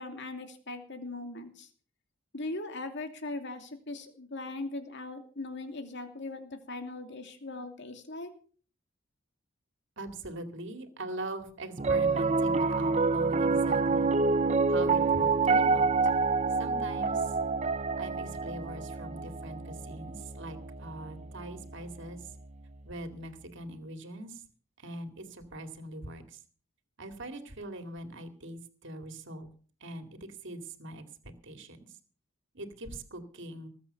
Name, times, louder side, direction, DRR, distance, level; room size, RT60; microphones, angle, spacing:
voice 1, 0.0-1.7 2.3-8.3, left 2 dB, 55° left, 6 dB, 2.8 m, -39 dB
voice 2, 10.0-14.1 14.7-16.2 16.6-17.3 18.0-22.3 22.8-24.4 24.8-26.4 27.0-29.5 29.8-31.9 32.5-33.7, right 1 dB, 60° right, 7 dB, 2.3 m, -42 dB
Piano, 11.8-22.1, right 4 dB, 35° right, 0.7 m, -27 dB
19.5 x 8.3 x 6.9 m, 0.43 s
head